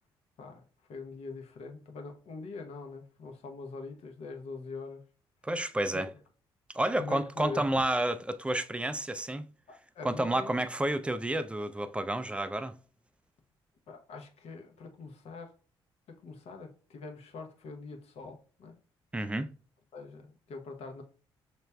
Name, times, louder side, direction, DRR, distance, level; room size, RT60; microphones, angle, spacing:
voice 1, 0.4-5.0 5.9-6.0 7.0-7.8 9.7-10.6 13.9-15.5 16.1-18.8 19.9-21.0, left 4 dB, 55° left, 0.9 m, -43 dB
voice 2, 5.4-6.1 6.7-9.5 10.0-12.8 19.1-19.5, right 1 dB, 10° right, 0.4 m, -30 dB
5.7 x 3.2 x 2.2 m
figure-of-eight pair, 45°, 13 cm